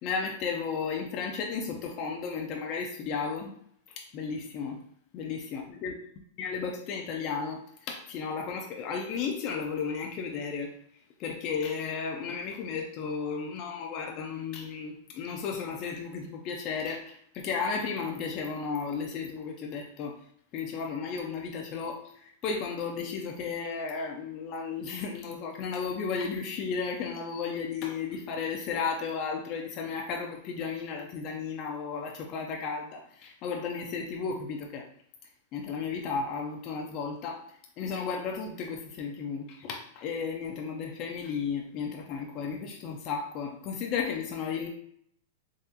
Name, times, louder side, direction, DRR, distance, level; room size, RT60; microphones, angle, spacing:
voice 1, 0.0-3.5 4.0-4.8 5.1-5.9 6.4-10.7 11.2-20.2 20.5-34.9 35.5-37.4 37.8-44.7, left 5 dB, 40° left, 1 dB, 0.4 m, -34 dB
3.6 x 2.3 x 2.7 m, 0.66 s
supercardioid pair, 145°, 0 cm